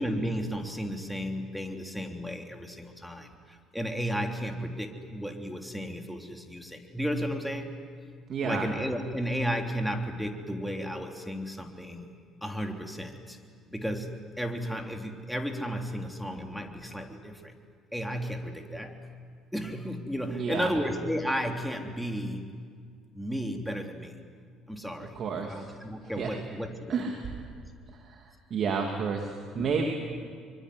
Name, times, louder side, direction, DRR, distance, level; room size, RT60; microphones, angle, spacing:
voice 1, 0.0-7.7 8.4-12.1 12.4-13.4 13.7-17.5 17.9-19.1 19.5-22.4 23.1-24.1 24.7-25.2 25.5-27.0 27.6-27.7 29.6-29.7, equal, ahead, 3 dB, 3.4 m, -33 dB
voice 2, 8.3-8.7 20.3-20.7 25.2-25.6 26.2-26.3 26.9-27.3 28.0-28.2 28.5-29.3 29.5-29.8, right 5 dB, 55° right, 3 dB, 2.8 m, -30 dB
24.5 x 24.0 x 9.7 m, 2.1 s
hypercardioid pair, 65°, 0 cm